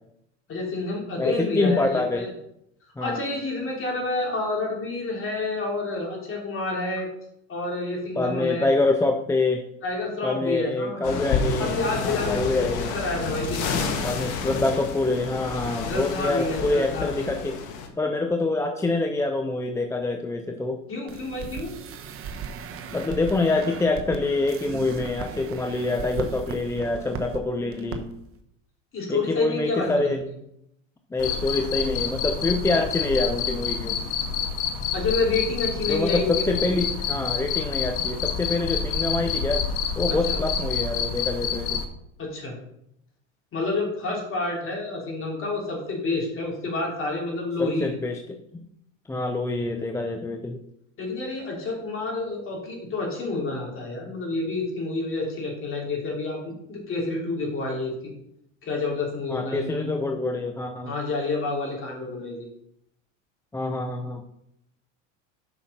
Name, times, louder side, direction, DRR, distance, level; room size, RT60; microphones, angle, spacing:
voice 1, 0.5-2.3 3.0-7.1 7.5-8.7 9.8-11.2 11.6-14.2 15.8-17.5 20.9-21.7 28.9-30.2 34.9-36.7 40.1-40.4 42.2-42.5 43.5-47.9 51.0-58.1 58.6-59.9 60.8-62.5, left 3 dB, 35° left, -1 dB, 3.4 m, -29 dB
voice 2, 1.2-2.3 3.0-3.2 8.1-9.6 10.2-11.7 12.0-12.9 14.0-17.6 18.0-20.8 22.9-28.1 29.1-30.2 31.1-34.0 35.9-39.6 40.0-41.8 47.6-48.2 48.5-48.7 49.1-50.6 59.3-60.9 63.5-64.2, left 2 dB, 10° left, 4 dB, 0.5 m, -26 dB
sound 1, 11.0-17.9, left 5 dB, 50° left, 1.4 m, -30 dB
sound 2, 21.1-27.4 27.7-28.0 28.2-28.4, right 6 dB, 35° right, 1.0 m, -37 dB
Cricket, 31.2-41.8, left 6 dB, 70° left, 1.4 m, -28 dB
6.1 x 5.8 x 5.6 m, 0.76 s
hypercardioid pair, 95°, 38 cm